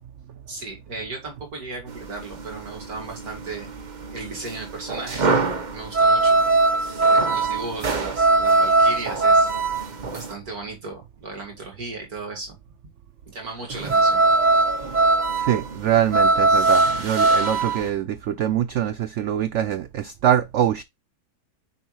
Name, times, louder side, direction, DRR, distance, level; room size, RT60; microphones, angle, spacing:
voice 1, 0.5-3.7 4.1-6.4 6.9-9.5 10.1-12.6 13.3-14.2, right 3 dB, 60° right, 2.6 m, -36 dB
sound 1, 1.9-10.3 13.7-17.9, right 3 dB, 35° right, 0.9 m, -20 dB
voice 2, 15.3-20.8, right 10 dB, 85° right, 0.6 m, -23 dB
7.0 x 5.3 x 3.1 m
omnidirectional pair, 1.8 m